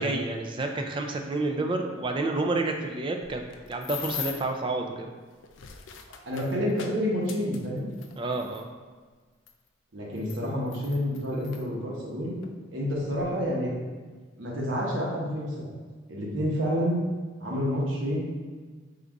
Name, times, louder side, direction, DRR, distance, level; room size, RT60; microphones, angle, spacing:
voice 1, 0.0-3.4 3.7-5.1 8.2-8.7, right 2 dB, 25° right, 3 dB, 0.3 m, -29 dB
sound 1, 3.2-4.6 5.3-8.6 9.5-9.6 10.2-11.6 12.4-12.6 12.9-13.2, left 8 dB, 75° left, 0.4 m, -41 dB
voice 2, 6.3-7.9 9.9-12.4 12.7-13.7 14.4-15.7 16.1-17.0 17.4-18.2, equal, 75° right, -4 dB, 1.0 m, -29 dB
3.9 x 2.4 x 4.6 m, 1.4 s
head